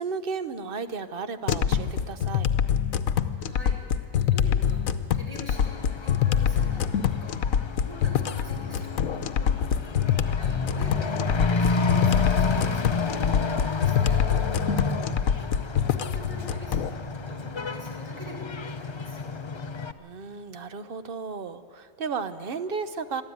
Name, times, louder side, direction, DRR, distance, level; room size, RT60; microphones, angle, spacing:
voice 1, 0.0-2.5 14.6-15.3 20.0-23.2, right 5 dB, 50° right, 12 dB, 0.9 m, -34 dB
sound 1, 1.5-16.9, left 8 dB, 75° left, 1.2 m, -25 dB
voice 2, 3.4-6.8 7.2-9.9 10.2-14.3 15.4-19.4, equal, 25° right, -2 dB, 5.3 m, -45 dB
Truck / Accelerating revving vroom, 5.5-19.9, left 3 dB, 35° left, 0.4 m, -31 dB
22.5 x 14.0 x 9.5 m, 2.7 s
omnidirectional pair, 1.4 m